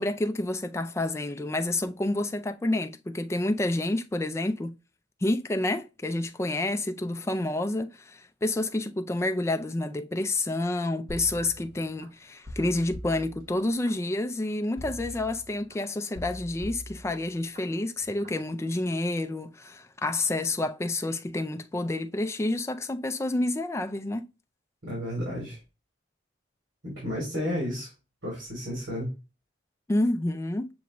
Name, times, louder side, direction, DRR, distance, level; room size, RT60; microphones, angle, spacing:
voice 1, 0.0-4.7 5.2-24.3 29.9-30.7, left 2 dB, 15° left, 0.3 m, -29 dB
sound 1, 11.1-12.1 12.5-13.9 14.8-15.7 16.1-17.6 18.0-18.4, equal, 45° right, 1.1 m, -42 dB
voice 2, 24.8-25.6 26.8-27.9 28.2-29.1, equal, 70° right, 2.8 m, -32 dB
6.8 x 2.5 x 2.9 m
head